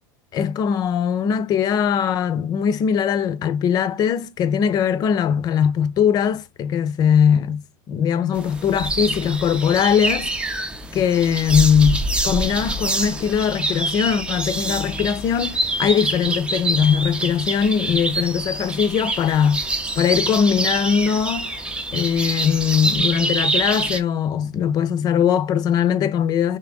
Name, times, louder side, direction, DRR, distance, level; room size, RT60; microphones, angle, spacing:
voice 1, 0.3-10.5 10.9-21.6 21.9-26.6, left 8 dB, 35° left, 0.5 m, -20 dB
sound 1, 8.3-24.0, right 2 dB, 10° right, 0.5 m, -26 dB
3.5 x 2.8 x 3.6 m
supercardioid pair, 115°, 11 cm